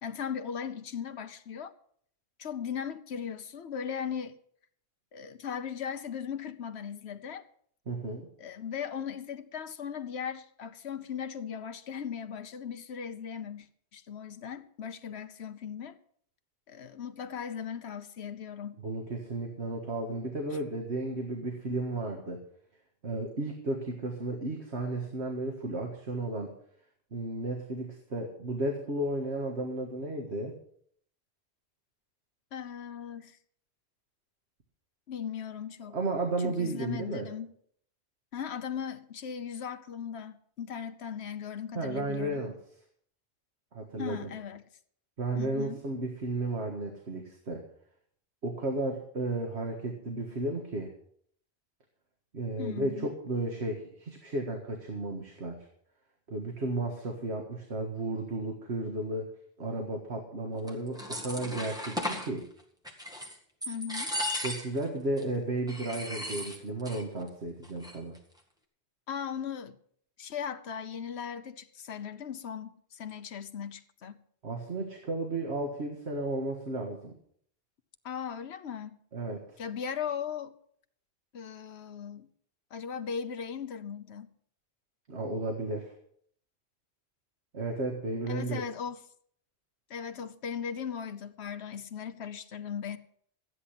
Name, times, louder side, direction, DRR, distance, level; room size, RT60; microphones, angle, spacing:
voice 1, 0.0-1.7 2.4-4.4 5.1-7.4 8.4-13.7 13.9-16.0 16.7-18.8 32.5-33.4 35.1-35.9 36.4-37.5 38.3-42.4 44.0-44.6 45.4-45.8 52.6-53.1 63.7-64.1 69.1-69.8 70.2-74.2 78.0-79.0 79.6-80.5 81.3-82.3 82.7-84.3 88.3-89.0 89.9-93.0, left 7 dB, 80° left, 1.1 m, -38 dB
voice 2, 7.9-8.3 18.8-22.4 23.0-26.5 27.1-30.5 35.9-37.3 41.7-42.5 43.7-44.3 45.2-47.6 48.4-50.9 52.3-55.6 56.3-59.3 59.6-62.5 64.4-68.2 74.4-77.1 79.1-79.6 85.1-85.9 87.5-88.6, right 2 dB, 85° right, 1.9 m, -33 dB
sound 1, 60.7-62.3 62.8-63.4 63.6-64.8 65.2-65.3 65.7-67.0 67.3-67.4 67.6-68.2, left 1 dB, 5° right, 1.9 m, -36 dB
13.5 x 9.9 x 5.8 m
omnidirectional pair, 1.1 m